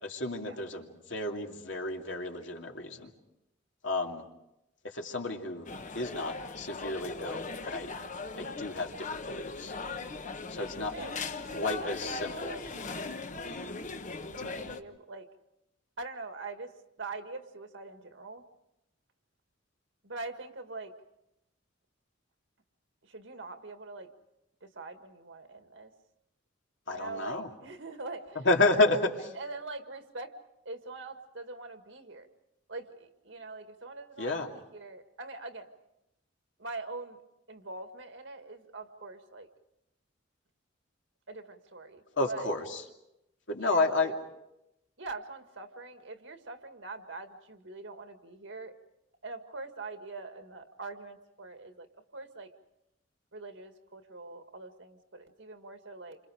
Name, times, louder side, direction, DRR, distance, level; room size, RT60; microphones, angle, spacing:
voice 1, 0.0-3.1 3.8-4.2 4.9-5.6 5.9-7.9 8.4-9.7 10.5-10.9 11.5-12.6 14.4-14.6 26.9-27.5 28.4-29.3 34.2-34.5 42.2-42.6 43.5-44.1, left 2 dB, 70° left, 2 dB, 2.6 m, -31 dB
sound 1, 5.6-14.8, left 3 dB, 40° left, 1.1 m, -39 dB
voice 2, 10.6-11.3 11.6-12.6 14.2-15.3 16.0-16.7 17.0-18.4 20.0-20.9 23.0-24.1 24.6-25.9 26.9-28.5 29.3-30.3 30.7-32.3 32.7-35.7 36.6-37.2 37.5-39.5 41.3-42.5 43.6-44.1 45.0-48.7 49.2-51.9 52.1-52.5 53.3-56.2, right 3 dB, 70° right, 7 dB, 1.9 m, -43 dB
29.0 x 26.5 x 5.0 m, 0.85 s
head